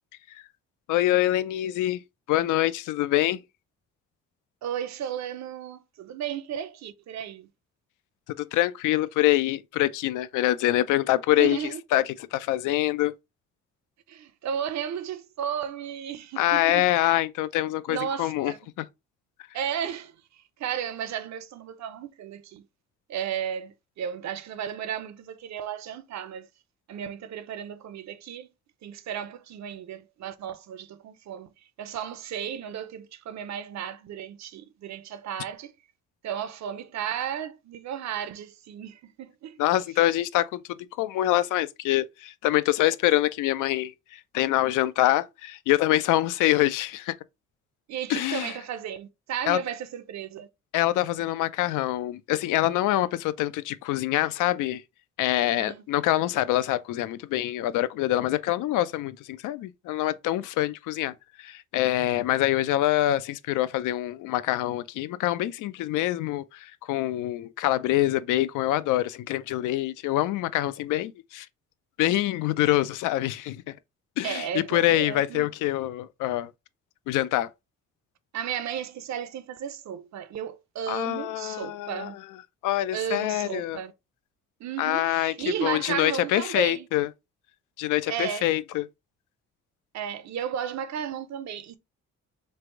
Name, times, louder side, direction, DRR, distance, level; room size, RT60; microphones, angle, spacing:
voice 1, 0.9-2.0 2.3-3.4 8.4-13.1 16.4-18.9 39.6-47.1 48.1-48.5 49.5-49.6 50.7-54.8 55.2-71.5 72.0-73.6 74.2-76.5 77.1-77.5 80.9-82.1 82.6-83.8 84.8-85.3 85.6-87.1 87.8-88.9, left 15 dB, 90° left, 0.5 m, -25 dB
voice 2, 4.6-7.5 11.4-11.8 14.1-16.9 17.9-18.6 19.5-22.6 23.1-26.5 26.9-28.5 28.8-31.5 31.8-35.7 36.2-39.6 47.9-50.5 55.5-55.8 72.6-72.8 74.2-75.5 78.3-82.2 82.9-83.9 84.6-86.9 88.1-88.5 89.9-91.8, right 9 dB, 65° right, 0.7 m, -34 dB
3.3 x 2.5 x 4.5 m
cardioid pair, 90°, 30 cm